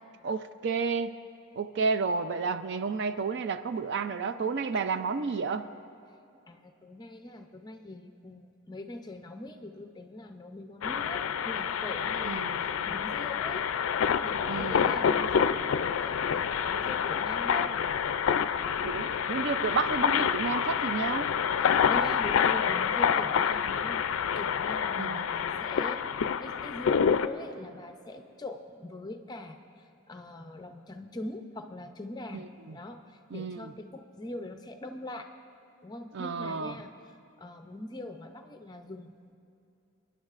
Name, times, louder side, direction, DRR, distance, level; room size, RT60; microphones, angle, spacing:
voice 1, 0.2-1.2 1.5-5.7 12.2-12.6 14.5-14.9 18.8-21.3 25.0-25.3 32.7-32.8 33.3-33.7 36.1-36.7, right 4 dB, 55° right, 11 dB, 0.4 m, -31 dB
voice 2, 6.5-13.6 14.2-17.8 18.7-19.1 21.6-24.0 24.3-29.6 30.1-35.3 35.8-39.3, left 2 dB, 20° left, 5 dB, 0.5 m, -42 dB
sound 1, 10.8-27.3, left 7 dB, 75° left, 0.4 m, -27 dB
28.0 x 10.0 x 2.5 m, 2.7 s
head